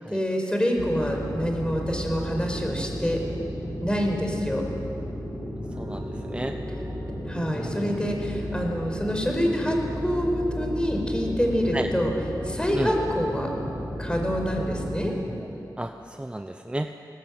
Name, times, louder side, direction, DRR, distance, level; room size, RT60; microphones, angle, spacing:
voice 1, 0.1-3.2 3.8-4.6 7.3-12.1 12.4-13.5 14.0-15.1, equal, 15° left, 2 dB, 5.2 m, -26 dB
sound 1, 0.8-15.1, equal, 30° left, 5.0 m, -34 dB
sound 2, 5.7-15.5, right 1 dB, 45° right, 3.8 m, -42 dB
voice 2, 5.8-6.5 7.5-7.9 11.7-11.9 12.7-12.9 15.8-16.9, right 1 dB, 15° right, 6 dB, 0.9 m, -32 dB
21.0 x 19.0 x 8.9 m, 2.8 s
cardioid pair, 55°, 7 cm